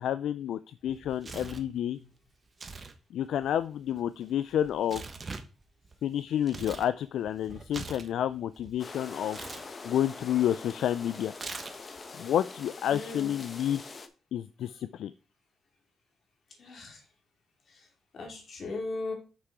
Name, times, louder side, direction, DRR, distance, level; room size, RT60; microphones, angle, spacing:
voice 1, 0.0-2.0 3.1-5.0 6.0-9.4 9.8-11.3 12.2-13.8 14.3-15.1, left 10 dB, 80° left, 14 dB, 0.3 m, -30 dB
Tearing, 0.9-1.7 2.5-3.0 3.2-6.9 7.3-8.8 9.3-9.7 11.3-12.0, right 4 dB, 30° right, 1.2 m, -43 dB
voice 2, 1.8-2.1 12.9-13.3 16.6-17.1 17.7-17.9 18.1-19.1, left 3 dB, 55° left, 3 dB, 2.6 m, -38 dB
sound 1, 8.8-14.1, left 4 dB, 35° left, 0.9 m, -44 dB
6.4 x 6.0 x 4.7 m, 0.35 s
cardioid pair, 95°, 0 cm